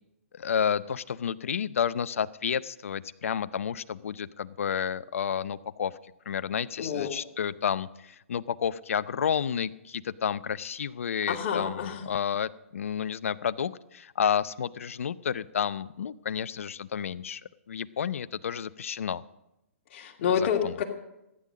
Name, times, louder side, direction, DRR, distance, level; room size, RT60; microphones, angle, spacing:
voice 1, 0.3-5.9 6.3-17.4 17.7-19.2 20.3-20.7, left 8 dB, 70° left, 16 dB, 0.6 m, -31 dB
voice 2, 6.8-7.1 11.3-12.1 19.9-20.8, left 7 dB, 45° left, 1 dB, 2.5 m, -28 dB
15.0 x 10.0 x 6.4 m, 0.89 s
hypercardioid pair, 130°, 8 cm